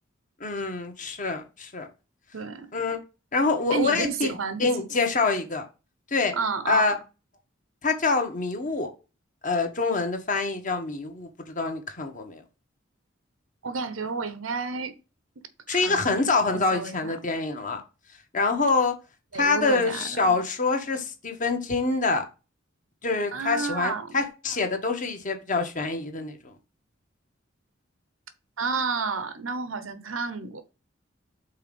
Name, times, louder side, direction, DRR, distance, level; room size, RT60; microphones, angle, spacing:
voice 1, 0.4-1.9 2.7-3.0 3.3-4.3 4.6-5.6 6.1-6.3 6.7-7.0 7.8-8.9 9.4-12.4 15.7-17.8 18.3-18.9 19.3-22.2 23.0-26.5, left 3 dB, 40° left, 1.4 m, -26 dB
voice 2, 2.3-2.7 3.7-4.7 6.3-6.9 13.6-14.9 15.7-16.2 16.5-17.1 19.3-20.4 23.3-24.2 28.6-30.6, right 4 dB, 90° right, 1.0 m, -31 dB
5.7 x 4.3 x 5.3 m
head